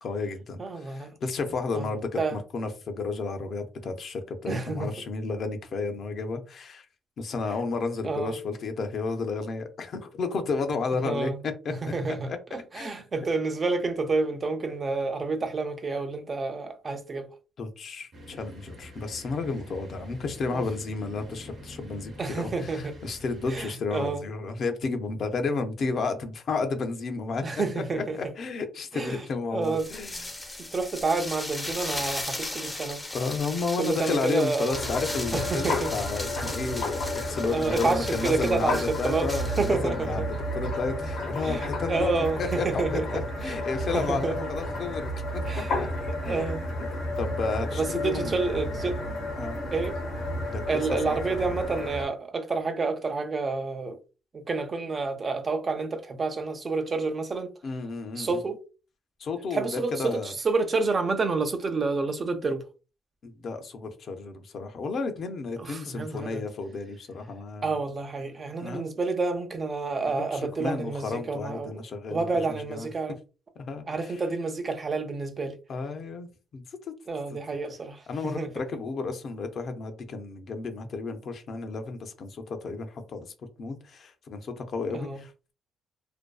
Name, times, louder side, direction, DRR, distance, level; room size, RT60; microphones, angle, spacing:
voice 1, 0.0-6.8 7.2-11.7 12.3-12.4 12.7-12.9 17.6-27.4 27.8-30.3 33.1-40.3 40.5-42.7 42.9-45.9 46.2-46.6 47.2-48.4 49.4-49.6 50.5-50.6 51.0-51.4 57.6-58.4 59.2-60.3 63.2-67.8 68.6-68.9 70.3-72.9 73.6-74.1 75.7-76.9 78.1-83.3 83.6-85.5, left 4 dB, 60° left, 0.5 m, -32 dB
voice 2, 0.6-1.1 1.7-2.4 4.5-4.9 8.0-8.4 10.9-11.4 11.8-17.3 20.5-20.6 22.2-22.9 23.5-24.3 27.4-28.2 28.9-29.2 29.5-29.9 30.6-33.0 33.8-34.8 35.3-35.9 37.5-40.3 41.4-43.5 43.9-44.3 45.5-45.8 46.2-46.7 47.7-49.0 49.7-50.0 50.7-54.0 54.3-57.5 58.2-58.6 59.5-62.6 65.6-66.4 67.6-71.7 72.1-73.2 73.9-75.6 77.1-78.5 84.9-85.2, right 3 dB, 40° right, 0.5 m, -29 dB
sound 1, 18.1-23.7, equal, 60° right, 0.8 m, -46 dB
sound 2, 29.6-39.7, left 2 dB, 15° left, 0.6 m, -37 dB
sound 3, 34.7-52.1, left 1 dB, 80° left, 0.9 m, -32 dB
2.5 x 2.2 x 2.2 m
cardioid pair, 90°, 0 cm